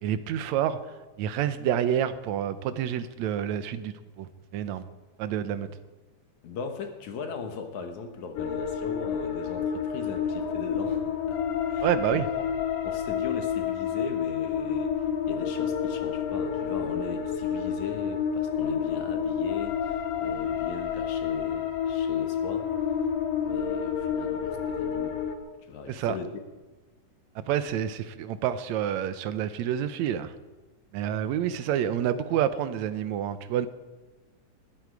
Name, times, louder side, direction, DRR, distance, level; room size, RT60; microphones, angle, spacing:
voice 1, 0.0-0.8 1.2-4.9 5.2-5.7 11.8-12.3 25.9-26.2 27.4-30.3 30.9-33.7, right 10 dB, 75° right, 12 dB, 1.9 m, -28 dB
voice 2, 6.4-11.4 11.7-12.2 12.8-22.7 23.4-25.2 25.7-26.3, left 5 dB, 70° left, 6 dB, 2.7 m, -39 dB
sound 1, 8.4-25.4, left 8 dB, 85° left, 2.8 m, -29 dB
20.0 x 13.0 x 4.8 m, 1.2 s
omnidirectional pair, 3.6 m